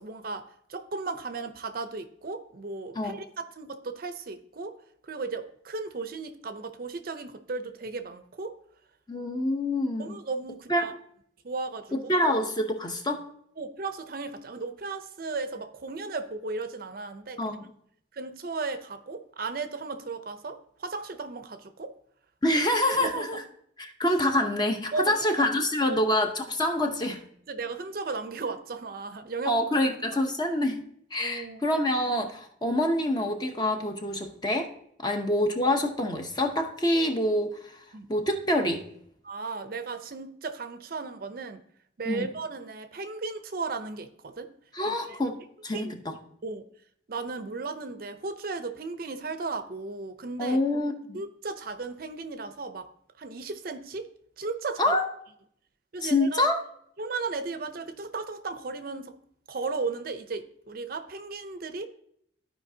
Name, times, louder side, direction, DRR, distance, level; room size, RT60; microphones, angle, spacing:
voice 1, 0.0-4.8 5.0-8.6 10.0-10.9 11.4-12.1 13.6-17.6 18.1-21.9 22.9-23.3 24.9-25.5 25.9-26.0 27.5-29.6 31.2-31.6 35.0-35.1 37.9-38.1 39.2-41.6 42.0-44.5 44.8-45.2 45.7-45.9 46.4-46.6 47.1-50.6 51.1-52.9 53.2-54.1 54.4-54.8 55.9-56.4 57.0-59.1 59.5-61.9, right 4 dB, 50° right, 9 dB, 0.5 m, -35 dB
voice 2, 9.1-10.2 10.7-10.8 11.9-13.2 17.4-17.6 22.4-23.4 23.8-27.2 29.5-30.8 31.1-34.7 35.0-37.8 38.1-38.8 42.1-42.3 44.7-45.4 45.6-46.1 50.4-51.2 54.8-55.0 56.0-56.6, left 1 dB, 20° left, 4 dB, 0.8 m, -26 dB
14.0 x 4.9 x 2.7 m, 0.69 s
head